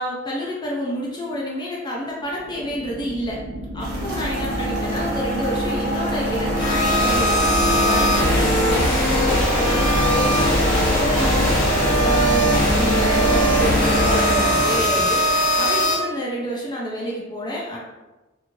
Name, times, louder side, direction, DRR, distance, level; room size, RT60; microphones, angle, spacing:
voice 1, 0.0-11.6 12.0-15.2 15.6-17.8, equal, 20° left, -3 dB, 0.4 m, -29 dB
sound 1, 2.3-15.4, equal, 75° left, 1.1 m, -23 dB
sound 2, 3.8-14.0, right 1 dB, 50° right, 0.7 m, -35 dB
sound 3, 6.6-15.9, equal, 45° left, 1.3 m, -21 dB
2.9 x 2.7 x 2.6 m, 1.1 s
head